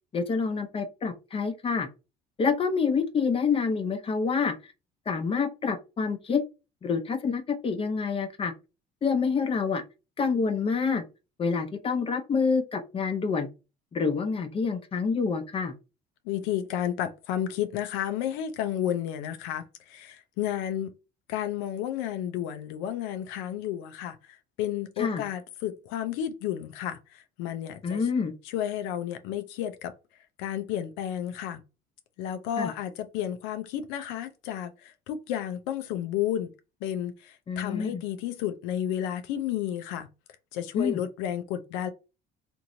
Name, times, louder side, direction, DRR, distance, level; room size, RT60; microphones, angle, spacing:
voice 1, 0.1-1.9 2.4-4.5 5.1-6.4 6.8-8.5 9.0-9.8 10.2-11.0 11.4-13.5 13.9-15.7 25.0-25.2 27.8-28.3 32.6-32.7 37.5-38.0 40.8-41.0, left 5 dB, 30° left, 0.6 m, -27 dB
voice 2, 16.2-20.9 21.3-28.1 28.4-29.9 30.4-31.6 32.2-36.5 36.8-40.1 40.5-41.9, left 10 dB, 85° left, 0.4 m, -32 dB
2.9 x 2.6 x 2.6 m
supercardioid pair, 95°, 20 cm